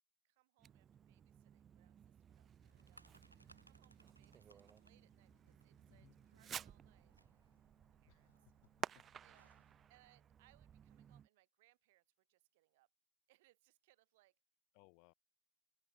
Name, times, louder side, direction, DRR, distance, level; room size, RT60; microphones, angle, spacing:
voice 1, 0.2-7.2 8.0-8.3 9.2-9.5 9.9-12.9 13.3-14.4, right 19 dB, 50° right, 0.9 m, -74 dB
Fireworks, 0.6-11.3, right 8 dB, 25° right, 0.4 m, -54 dB
sound 1, 2.6-9.9, right 1 dB, 85° right, 0.7 m, -70 dB
voice 2, 8.1-9.2 14.7-15.1, left 40 dB or more, 45° left, 0.6 m, -69 dB
figure-of-eight pair, 90°, 0 cm